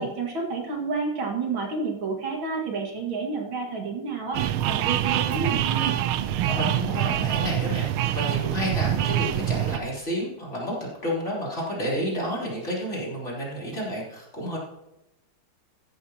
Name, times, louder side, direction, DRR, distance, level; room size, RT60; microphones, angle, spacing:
voice 1, 0.0-6.0, right 4 dB, 70° right, 0 dB, 2.6 m, -30 dB
sound 1, 4.3-9.8, right 11 dB, 85° right, 1.5 m, -25 dB
voice 2, 6.5-14.6, equal, 30° left, -5 dB, 3.7 m, -30 dB
14.5 x 11.5 x 2.9 m, 0.95 s
omnidirectional pair, 2.3 m